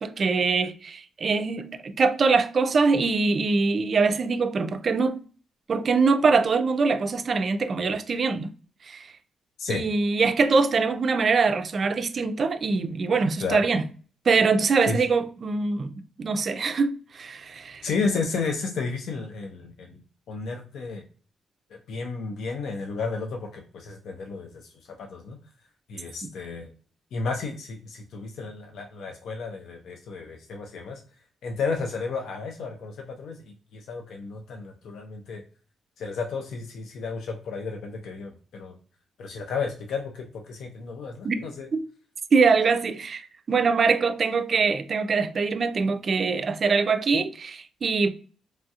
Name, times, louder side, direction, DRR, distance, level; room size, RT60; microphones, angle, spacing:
voice 1, 0.0-5.2 5.7-8.5 8.9-9.1 9.7-13.8 14.3-15.9 16.2-17.9 41.2-41.4 41.7-41.8 42.3-48.1, right 4 dB, 45° right, 0.3 m, -23 dB
voice 2, 17.8-20.0 20.3-21.0 21.9-24.7 25.0-25.4 25.9-26.7 27.1-31.0 31.4-35.4 36.0-38.8 39.2-41.7, left 4 dB, 75° left, 0.5 m, -32 dB
3.0 x 2.3 x 2.7 m
cardioid pair, 125°, 0 cm